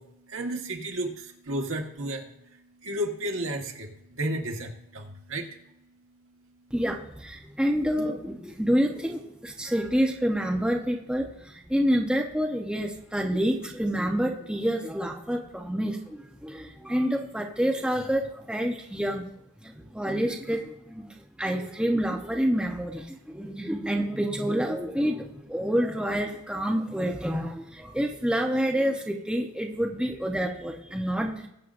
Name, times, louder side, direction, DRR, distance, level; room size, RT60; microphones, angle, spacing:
voice 1, 0.0-5.6, right 1 dB, 75° right, 2 dB, 1.5 m, -33 dB
voice 2, 6.7-19.3 19.6-31.5, equal, 5° right, 0 dB, 0.8 m, -28 dB
20.5 x 7.5 x 2.6 m, 0.83 s
head